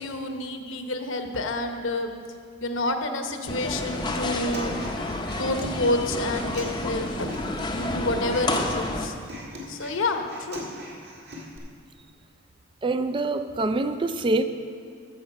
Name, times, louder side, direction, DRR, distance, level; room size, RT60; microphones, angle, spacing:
voice 1, 0.0-2.1 2.6-4.7 5.2-7.3 7.7-9.1 9.7-10.7, left 2 dB, 70° left, 6 dB, 0.9 m, -29 dB
sound 1, 3.5-9.1, left 2 dB, 20° left, 0.6 m, -30 dB
Human voice, 3.6-11.6, right 1 dB, 50° right, 1.9 m, -41 dB
voice 2, 12.8-14.4, right 2 dB, 25° right, 10 dB, 0.3 m, -25 dB
14.0 x 7.3 x 5.3 m, 2.1 s
head